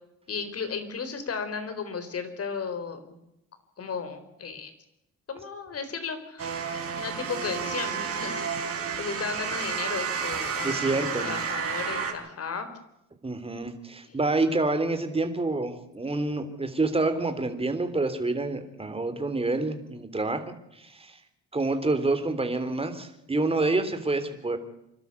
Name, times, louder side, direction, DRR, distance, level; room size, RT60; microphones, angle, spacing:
voice 1, 0.3-3.2 3.8-4.7 5.3-6.6 6.9-8.3 9.0-12.7 14.1-14.2, left 5 dB, 50° left, 10 dB, 4.2 m, -34 dB
sound 1, 6.4-12.1, right 6 dB, 50° right, 4.6 m, -31 dB
voice 2, 10.6-11.3 13.2-20.4 20.8-21.2 21.5-24.6, right 2 dB, 20° right, 8 dB, 3.3 m, -27 dB
27.5 x 12.5 x 8.3 m, 0.84 s
cardioid pair, 90°, 30 cm